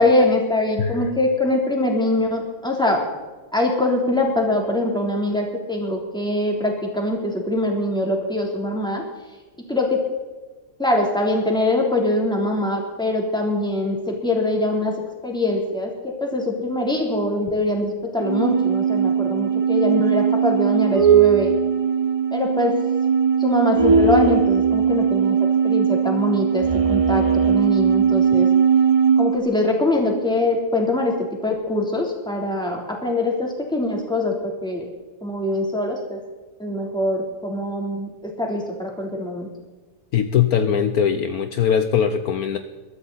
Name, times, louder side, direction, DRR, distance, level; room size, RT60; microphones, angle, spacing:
voice 1, 0.0-3.0 3.5-9.0 9.7-10.0 10.8-15.0 15.2-21.5 22.3-22.8 23.4-28.5 29.2-31.2 31.4-34.9 35.2-36.2 36.6-39.5, left 1 dB, ahead, 0 dB, 3.1 m, -23 dB
voice 2, 0.8-1.2 40.1-42.6, left 8 dB, 65° left, 8 dB, 1.2 m, -21 dB
sound 1, 18.2-29.4, right 6 dB, 35° right, 0.6 m, -19 dB
22.5 x 13.0 x 4.1 m, 1.3 s
omnidirectional pair, 1.8 m